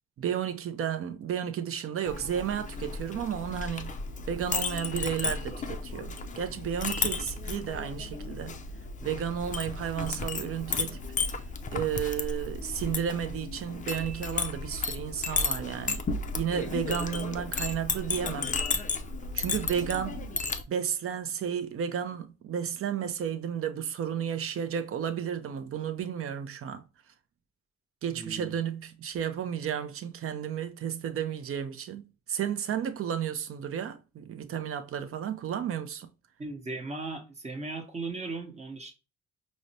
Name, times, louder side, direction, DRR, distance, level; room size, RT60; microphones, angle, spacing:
voice 1, 0.2-4.0 4.3-8.6 9.0-11.0 11.7-16.0 16.4-18.6 19.3-20.2 20.7-26.8 28.0-32.0 32.3-36.1, right 8 dB, 50° right, 0.5 m, -32 dB
Chink clink, 2.1-20.6, left 4 dB, 25° left, 0.4 m, -34 dB
voice 2, 28.1-28.6 36.4-38.9, right 3 dB, 20° right, 0.9 m, -37 dB
4.7 x 2.1 x 2.7 m
cardioid pair, 90°, 30 cm